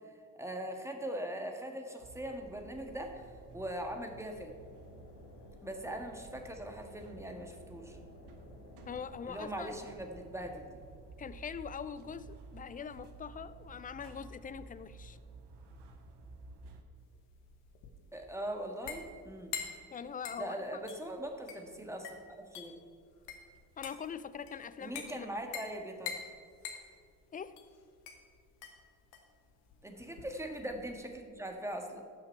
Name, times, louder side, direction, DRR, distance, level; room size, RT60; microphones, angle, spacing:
voice 1, 0.4-3.2 3.5-4.5 5.6-8.0 9.3-10.8 18.1-19.6 20.4-22.7 24.8-26.2 29.8-32.0, right 1 dB, 5° right, 3 dB, 1.6 m, -41 dB
sound 1, 2.0-16.8, right 3 dB, 55° right, 1.2 m, -53 dB
sound 2, 4.6-9.7, left 4 dB, 60° left, 1.3 m, -56 dB
voice 2, 8.9-9.7 11.2-15.2 19.9-20.8 23.8-25.3 27.3-27.5, left 7 dB, 20° left, 14 dB, 0.4 m, -43 dB
sound 3, 17.0-31.0, left 7 dB, 80° left, 1.1 m, -47 dB
15.5 x 5.7 x 4.5 m, 2.2 s
hypercardioid pair, 40°, 48 cm